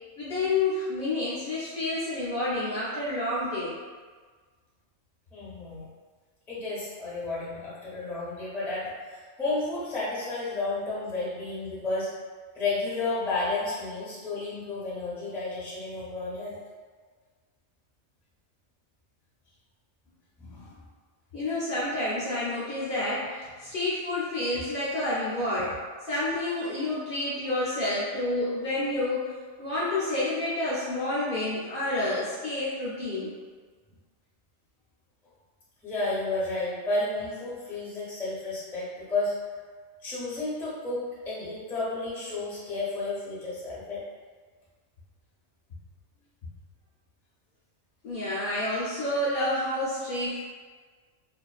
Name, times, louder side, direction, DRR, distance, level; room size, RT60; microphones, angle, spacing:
voice 1, 0.2-3.7 21.3-33.3 48.0-50.4, left 2 dB, 60° left, -9 dB, 0.6 m, -29 dB
voice 2, 5.3-5.9 6.5-12.1 12.5-16.6 20.4-20.7 35.8-39.3 40.0-44.0, left 2 dB, 5° left, -8 dB, 0.4 m, -32 dB
2.4 x 2.3 x 2.3 m, 1.5 s
omnidirectional pair, 1.3 m